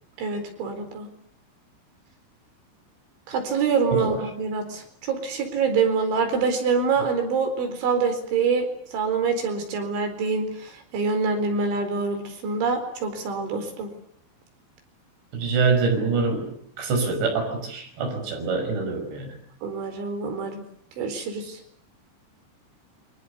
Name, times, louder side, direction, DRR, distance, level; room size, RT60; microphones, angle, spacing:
voice 1, 0.2-1.1 3.3-8.7 8.9-13.9 19.6-20.6 21.0-21.6, right 5 dB, 85° right, 6 dB, 6.8 m, -25 dB
voice 2, 3.9-4.2 15.3-16.4 16.8-19.4, right 4 dB, 65° right, 3 dB, 8.0 m, -25 dB
28.5 x 25.0 x 6.9 m, 0.65 s
omnidirectional pair, 5.2 m